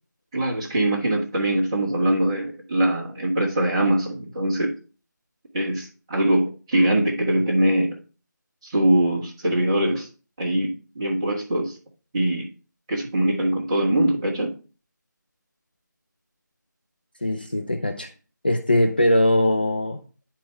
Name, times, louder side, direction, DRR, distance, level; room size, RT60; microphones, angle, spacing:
voice 1, 0.3-4.7 5.5-8.0 8.6-10.1 10.4-11.7 12.1-12.5 12.9-14.5, right 1 dB, 15° right, 1.4 m, -22 dB
voice 2, 17.2-18.1 18.4-20.0, left 1 dB, 30° left, 0.3 m, -21 dB
9.7 x 4.3 x 3.4 m
figure-of-eight pair, 170°, 10 cm